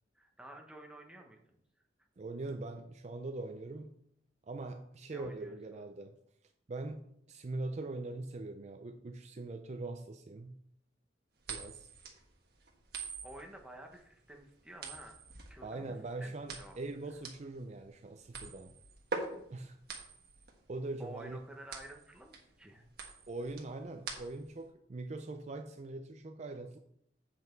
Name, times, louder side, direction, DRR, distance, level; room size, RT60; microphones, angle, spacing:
voice 1, 0.1-1.4 5.1-5.9 13.2-15.2 15.5-15.9 16.2-16.8 21.0-22.9, right 1 dB, 5° right, 2 dB, 1.1 m, -51 dB
voice 2, 2.2-4.0 4.4-6.2 6.7-10.6 11.5-11.9 15.6-18.7 19.5-19.8 20.7-21.4 23.3-26.8, right 2 dB, 40° right, 6 dB, 0.5 m, -42 dB
sound 1, 11.4-24.6, right 4 dB, 60° right, 1.4 m, -45 dB
7.8 x 5.8 x 4.5 m, 0.72 s
head